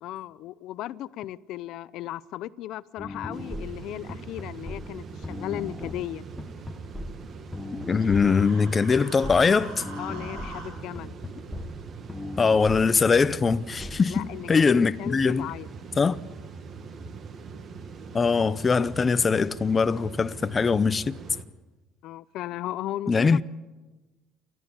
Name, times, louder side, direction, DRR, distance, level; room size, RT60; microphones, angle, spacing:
voice 1, 0.0-6.2 10.0-11.2 14.1-15.7 22.0-23.4, left 13 dB, 65° left, 0.6 m, -36 dB
sound 1, 3.0-14.0, left 2 dB, 5° left, 1.3 m, -38 dB
sound 2, 3.3-21.4, right 5 dB, 40° right, 1.6 m, -42 dB
voice 2, 7.9-9.8 12.4-15.5 16.0-16.2 18.1-21.2 23.1-23.4, left 5 dB, 25° left, 0.6 m, -22 dB
Human voice, 7.9-10.7, right 4 dB, 80° right, 6.4 m, -44 dB
30.0 x 14.0 x 7.1 m
cardioid pair, 120°, 0 cm